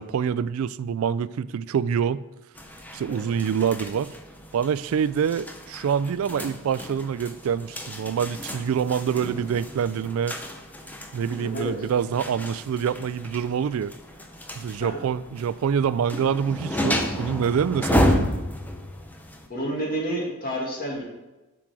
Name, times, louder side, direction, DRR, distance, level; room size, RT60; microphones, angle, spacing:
voice 1, 0.0-2.2 2.9-4.1 4.5-10.4 11.1-13.9 14.6-18.3, right 7 dB, 70° right, 16 dB, 0.3 m, -26 dB
sound 1, 2.6-19.5, left 1 dB, 10° left, 0.6 m, -31 dB
voice 2, 11.4-11.8 14.8-15.0 19.5-21.0, right 1 dB, 40° left, -2 dB, 2.1 m, -30 dB
7.5 x 5.9 x 4.8 m, 1.1 s
head